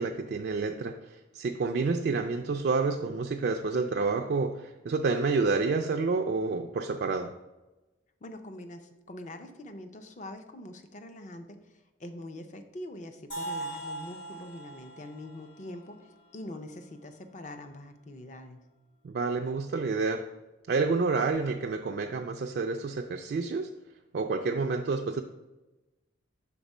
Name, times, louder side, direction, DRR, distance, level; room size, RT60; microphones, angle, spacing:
voice 1, 0.0-7.3 19.0-20.3 20.7-23.7 24.1-25.2, right 4 dB, 55° right, 3 dB, 0.3 m, -29 dB
voice 2, 8.2-18.6, left 1 dB, 40° left, 7 dB, 0.5 m, -44 dB
sound 1, 13.3-17.2, right 2 dB, 65° left, 1.9 m, -41 dB
6.0 x 3.6 x 5.3 m, 1.1 s
head